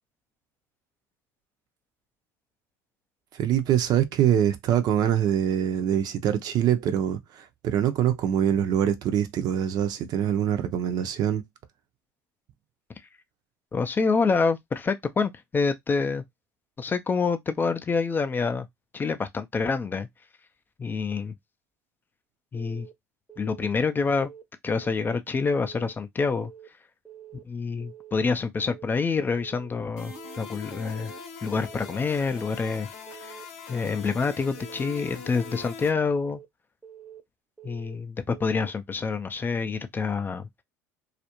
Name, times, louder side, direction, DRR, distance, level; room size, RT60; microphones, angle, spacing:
voice 1, 3.3-11.4, right 10 dB, 55° right, 0.5 m, -24 dB
voice 2, 13.7-16.2 16.8-18.7 18.9-20.1 20.8-21.3 22.5-22.9 23.4-24.3 24.6-26.5 27.4-31.1 31.4-33.4 33.7-36.4 37.6-40.5, left 4 dB, 25° left, 0.4 m, -27 dB
Keyboard (musical) / Alarm, 22.5-22.9 23.3-23.7 24.0-24.4 24.8-25.2 25.5-25.9 26.3-26.7 27.1-27.4 27.8-28.2 28.6-28.9 29.3-29.7 30.1-30.4 30.8-31.2 31.6-31.9 32.3-32.7 33.1-33.4 33.8-34.2 34.6-35.0 35.3-35.7 36.1-36.5 36.8-37.2 37.6-38.0 38.3-38.7, right 10 dB, 5° right, 0.7 m, -47 dB
sound 1, 30.0-35.9, left 5 dB, 80° left, 0.8 m, -42 dB
2.4 x 2.0 x 2.9 m
hypercardioid pair, 80°, 8 cm